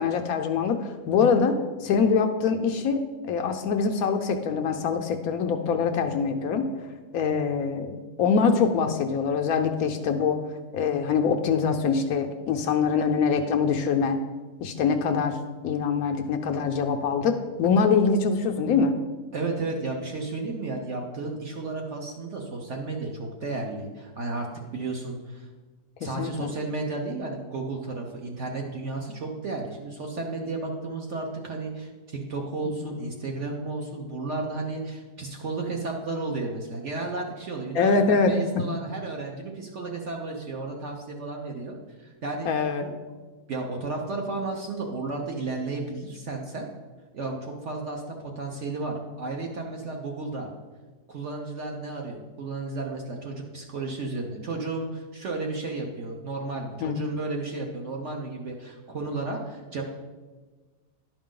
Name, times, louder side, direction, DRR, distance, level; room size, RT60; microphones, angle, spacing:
voice 1, 0.0-6.7 7.1-7.9 8.2-10.4 10.7-14.2 14.6-15.4 15.6-18.9 26.2-26.5 32.6-33.0 37.7-38.7 42.4-42.9 56.8-57.0, left 5 dB, 70° left, 5 dB, 0.9 m, -24 dB
voice 2, 19.3-24.5 24.7-25.5 26.0-42.5 42.8-42.9 43.5-46.7 47.1-50.5 51.1-59.8, right 3 dB, 55° right, 0 dB, 0.9 m, -33 dB
11.0 x 5.0 x 3.7 m, 1.3 s
omnidirectional pair, 1.8 m